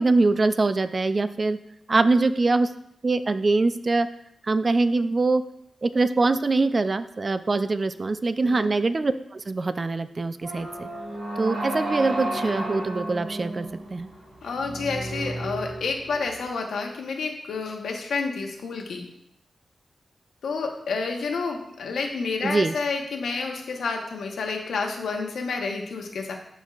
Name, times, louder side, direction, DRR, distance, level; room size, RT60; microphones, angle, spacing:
voice 1, 0.0-1.6 1.9-2.7 3.0-4.1 4.5-5.4 5.8-10.9 11.4-14.1 22.4-22.7, right 3 dB, 40° right, 11 dB, 0.4 m, -23 dB
sound 1, 10.4-16.4, right 1 dB, 85° right, 2.3 m, -33 dB
voice 2, 14.4-19.0 20.4-26.3, left 4 dB, 90° left, 2 dB, 1.1 m, -29 dB
12.0 x 4.5 x 2.4 m, 0.76 s
cardioid pair, 70°, 0 cm